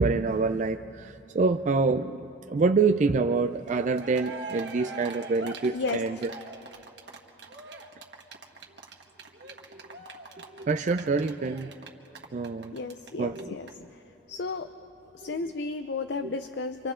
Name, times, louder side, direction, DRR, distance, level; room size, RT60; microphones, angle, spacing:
voice 1, 0.0-6.3 9.7-9.8 10.4-11.7 12.3-12.8 13.2-13.6 15.2-15.4 16.2-16.3, right 4 dB, 45° right, 8 dB, 0.4 m, -26 dB
Cheering, 3.7-3.8 3.9-13.1 13.3-13.4 13.7-13.8, right 3 dB, 70° right, 1.5 m, -42 dB
voice 2, 5.7-6.0 12.7-13.9 14.3-14.7 15.1-16.9, left 3 dB, 70° left, 9 dB, 0.5 m, -33 dB
30.0 x 26.0 x 3.8 m, 3.0 s
head